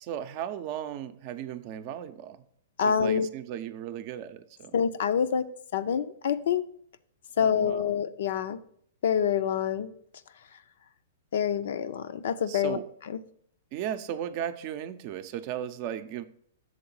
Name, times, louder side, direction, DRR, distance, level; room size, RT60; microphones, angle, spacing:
voice 1, 0.0-2.4 2.8-4.7 7.4-7.9 12.5-12.9 13.7-16.2, right 10 dB, 45° right, 10 dB, 0.5 m, -36 dB
voice 2, 2.8-3.3 4.7-5.4 5.7-6.6 7.4-8.6 9.0-9.9 11.3-12.8 13.1-13.2, left 8 dB, 70° left, 12 dB, 0.5 m, -26 dB
6.5 x 3.9 x 5.4 m, 0.63 s
hypercardioid pair, 125°, 0 cm